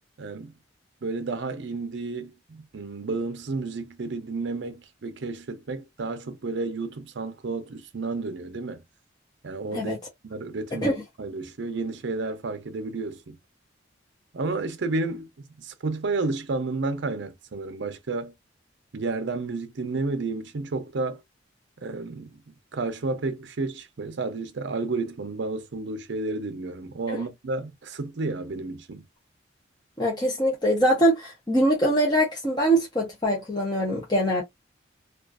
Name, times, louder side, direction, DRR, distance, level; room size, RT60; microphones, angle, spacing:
voice 1, 0.2-0.5 1.0-8.8 9.4-10.0 10.2-10.9 11.2-13.4 14.3-15.3 15.6-18.3 18.9-21.2 21.8-22.3 22.7-29.0, right 3 dB, 65° right, 0.5 m, -31 dB
voice 2, 30.0-34.4, right 1 dB, 20° left, 0.6 m, -23 dB
2.4 x 2.3 x 2.3 m
head